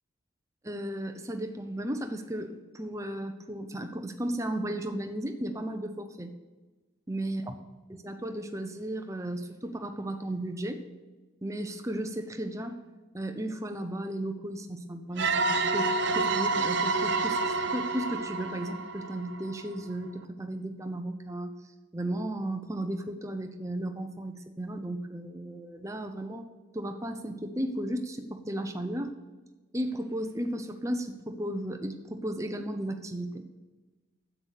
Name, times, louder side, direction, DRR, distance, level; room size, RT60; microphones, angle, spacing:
voice 1, 0.6-6.3 7.1-7.5 8.0-10.8 11.4-12.8 13.1-21.5 21.9-26.5 26.7-29.1 29.7-33.4, right 1 dB, 15° right, 6 dB, 0.8 m, -35 dB
sound 1, 15.2-19.7, right 3 dB, 55° right, 0.7 m, -28 dB
9.6 x 8.1 x 6.5 m, 1.3 s
head